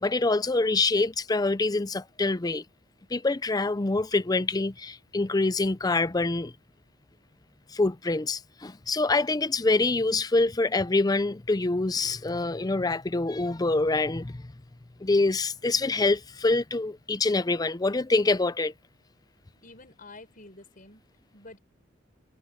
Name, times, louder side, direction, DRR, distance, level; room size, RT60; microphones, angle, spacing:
voice 1, 0.0-2.6 3.1-6.5 7.7-14.5 15.0-18.7, left 3 dB, 20° left, 0.5 m, -25 dB
voice 2, 19.6-21.6, left 2 dB, 45° left, 6.9 m, -49 dB
head